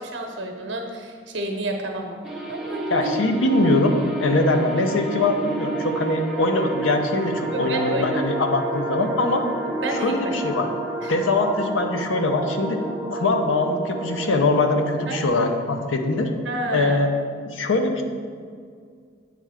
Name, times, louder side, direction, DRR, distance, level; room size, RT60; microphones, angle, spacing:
voice 1, 0.0-2.2 2.5-3.4 7.5-8.0 9.8-10.1 11.0-11.1 15.1-15.2 16.4-17.0, right 1 dB, 70° right, 2 dB, 0.9 m, -30 dB
sound 1, 2.2-15.3, right 3 dB, 5° right, 0.5 m, -30 dB
voice 2, 2.9-9.4 9.9-10.7 11.1-12.8 13.1-16.3 16.7-17.1 17.5-18.0, left 2 dB, 85° left, 5 dB, 0.6 m, -22 dB
7.7 x 3.3 x 4.9 m, 2.1 s
head